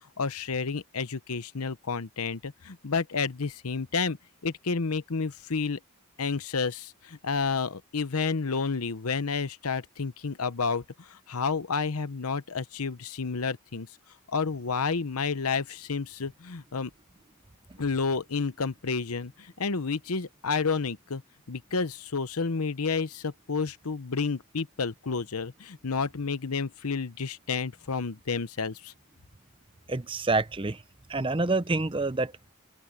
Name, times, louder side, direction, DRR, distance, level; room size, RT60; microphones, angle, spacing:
voice 1, 0.2-4.2 4.4-5.8 6.2-10.8 11.3-13.9 14.3-16.9 17.8-19.3 19.6-21.2 21.5-28.9, left 4 dB, 85° left, 0.9 m, -30 dB
voice 2, 29.9-30.8 31.1-32.5, right 3 dB, 25° right, 0.7 m, -27 dB
head